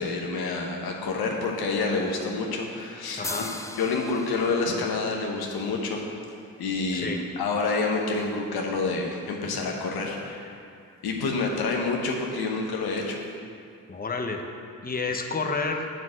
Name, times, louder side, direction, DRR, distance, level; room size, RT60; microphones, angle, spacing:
voice 1, 0.0-3.5 3.8-6.0 6.6-10.5 11.0-13.2, left 3 dB, 85° left, 0 dB, 1.2 m, -28 dB
voice 2, 3.2-3.6 6.9-7.2 13.9-14.4 14.8-15.9, left 4 dB, 25° left, 3 dB, 0.9 m, -30 dB
sound 1, 3.2-6.8, left 2 dB, 10° left, 0.4 m, -40 dB
7.1 x 6.2 x 6.4 m, 2.4 s
supercardioid pair, 50°, 36 cm